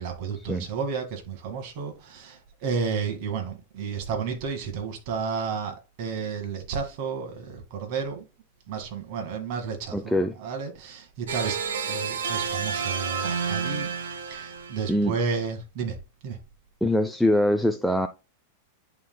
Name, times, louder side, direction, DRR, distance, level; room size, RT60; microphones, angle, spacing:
voice 1, 0.0-8.2 8.7-13.9 14.2-16.0 16.2-16.4, right 5 dB, 55° right, 1.9 m, -32 dB
voice 2, 9.9-10.4 14.9-15.2 16.8-18.1, left 1 dB, ahead, 0.4 m, -23 dB
sound 1, 11.3-15.0, right 6 dB, 85° right, 1.2 m, -30 dB
11.0 x 3.7 x 2.2 m
hypercardioid pair, 130°, 0 cm